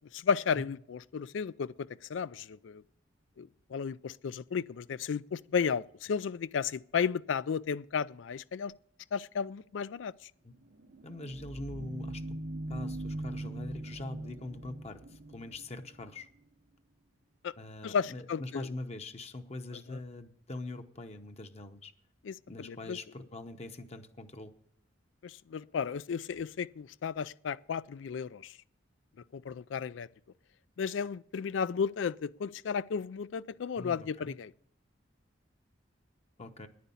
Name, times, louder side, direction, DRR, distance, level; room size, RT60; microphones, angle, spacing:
voice 1, 0.1-2.8 3.4-8.7 9.1-10.1 17.4-17.5 17.8-18.7 19.9-20.0 22.2-23.0 25.2-28.5 29.3-30.1 30.8-34.5, left 6 dB, 85° left, 0.4 m, -34 dB
sound 1, 10.6-16.1, right 1 dB, 65° right, 0.8 m, -41 dB
voice 2, 11.0-12.4 12.7-16.3 17.6-21.9 22.5-24.5 33.8-34.3 36.4-36.7, left 2 dB, 35° left, 0.8 m, -43 dB
10.0 x 9.5 x 7.1 m
head